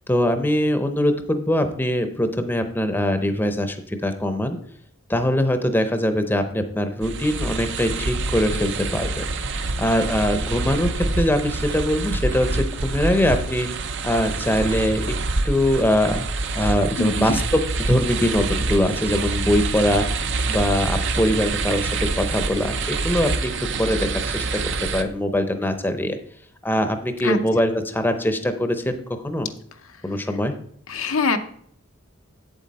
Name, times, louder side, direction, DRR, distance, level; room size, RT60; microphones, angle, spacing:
voice 1, 0.1-4.6 5.1-9.3 9.8-13.7 14.0-15.1 15.4-16.3 16.5-20.1 20.5-23.5 23.8-26.2 26.6-29.5 30.0-30.5, left 1 dB, 10° left, 8 dB, 0.7 m, -22 dB
sound 1, 7.0-25.0, right 3 dB, 60° right, 0.6 m, -26 dB
voice 2, 17.0-17.3 27.2-27.4 30.9-31.4, left 3 dB, 85° left, 7 dB, 0.7 m, -23 dB
8.0 x 7.6 x 4.1 m, 0.64 s
head